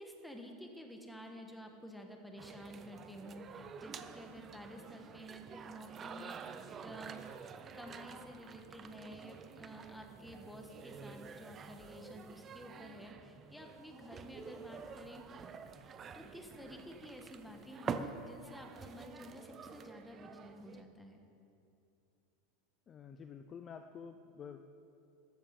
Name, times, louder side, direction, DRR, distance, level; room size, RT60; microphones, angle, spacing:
voice 1, 0.0-7.2 7.7-15.2 16.1-21.2, equal, ahead, 3 dB, 1.3 m, -51 dB
sound 1, 2.4-20.8, right 6 dB, 20° right, 0.6 m, -48 dB
voice 2, 22.9-24.6, left 7 dB, 25° left, 8 dB, 0.5 m, -49 dB
14.0 x 12.5 x 5.3 m, 2.6 s
supercardioid pair, 155°, 0 cm